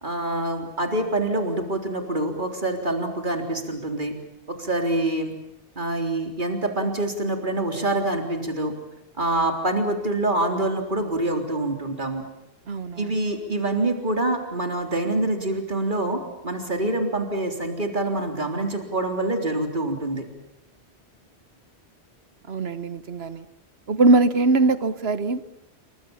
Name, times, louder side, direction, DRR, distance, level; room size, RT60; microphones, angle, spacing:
voice 1, 0.0-4.1 4.5-5.3 5.8-8.7 9.2-12.2 13.0-20.2, right 2 dB, 45° right, 4 dB, 4.0 m, -26 dB
voice 2, 12.7-13.2 22.5-23.4 23.9-25.6, right 3 dB, 65° right, 13 dB, 1.4 m, -22 dB
29.5 x 24.5 x 7.2 m, 0.83 s
omnidirectional pair, 1.1 m